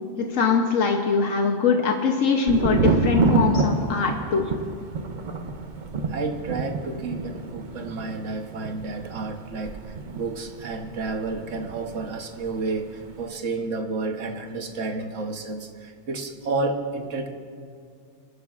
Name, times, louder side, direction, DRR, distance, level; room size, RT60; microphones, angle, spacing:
voice 1, 0.2-4.5, left 5 dB, 80° left, 2 dB, 1.2 m, -22 dB
Thunder, 2.5-12.1 12.4-13.1, right 4 dB, 45° right, 0.8 m, -27 dB
voice 2, 6.1-17.3, right 3 dB, 70° right, 5 dB, 1.4 m, -31 dB
27.5 x 11.5 x 2.4 m, 2.3 s
omnidirectional pair, 1.3 m